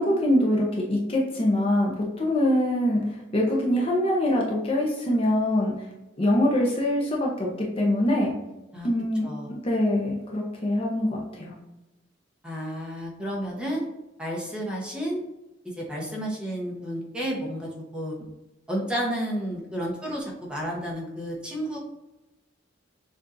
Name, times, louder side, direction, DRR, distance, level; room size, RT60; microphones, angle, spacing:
voice 1, 0.0-5.7 6.2-8.3 8.8-11.5, left 1 dB, 30° left, -2 dB, 0.7 m, -24 dB
voice 2, 12.4-13.8 14.2-15.2 15.6-18.2 18.7-21.8, equal, 5° right, -3 dB, 0.9 m, -31 dB
6.7 x 2.6 x 2.6 m, 0.99 s
head